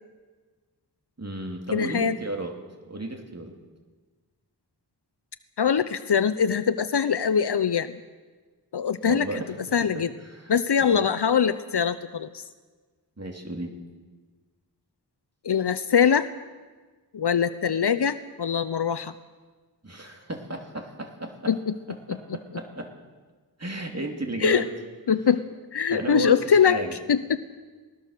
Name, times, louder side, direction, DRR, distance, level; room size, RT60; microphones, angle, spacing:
voice 1, 1.2-2.5 2.9-3.6 9.0-9.5 9.8-10.5 10.9-11.0 13.2-13.7 19.8-21.5 22.1-22.9 23.6-24.7 25.9-27.0, right 1 dB, 40° right, 2 dB, 2.9 m, -33 dB
voice 2, 1.7-2.2 5.6-7.9 8.7-10.1 10.5-12.5 15.4-16.3 17.1-19.1 21.5-21.7 22.1-22.2 24.4-24.6 25.1-25.4 25.7-26.8 27.1-27.4, left 7 dB, 75° left, 12 dB, 0.7 m, -23 dB
20.0 x 20.0 x 6.6 m, 1.4 s
wide cardioid pair, 55°, 41 cm